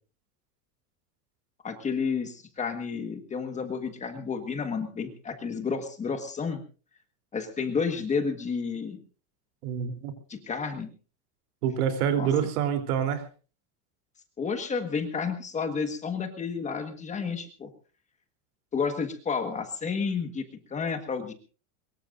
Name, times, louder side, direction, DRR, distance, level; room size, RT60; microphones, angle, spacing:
voice 1, 1.6-6.6 7.3-9.0 10.3-10.9 12.2-12.3 14.4-17.7 18.7-20.4 20.7-21.3, left 5 dB, 15° left, 7 dB, 1.5 m, -31 dB
voice 2, 9.6-10.1 11.6-13.2, right 8 dB, 75° right, 7 dB, 3.5 m, -26 dB
23.5 x 21.5 x 2.5 m, 0.36 s
supercardioid pair, 170°, 45 cm